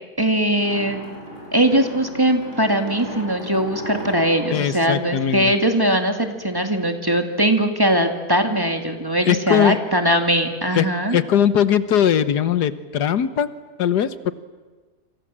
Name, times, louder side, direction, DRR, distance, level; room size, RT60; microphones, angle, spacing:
voice 1, 0.2-1.0 1.5-11.2, right 1 dB, 15° right, 5 dB, 2.1 m, -20 dB
sound 1, 0.5-5.9, right 1 dB, 35° left, 5.8 m, -36 dB
voice 2, 4.5-5.5 9.2-9.8 10.7-13.5 13.8-14.3, left 9 dB, 85° left, 13 dB, 1.6 m, -20 dB
28.0 x 26.0 x 7.5 m, 1.3 s
omnidirectional pair, 1.7 m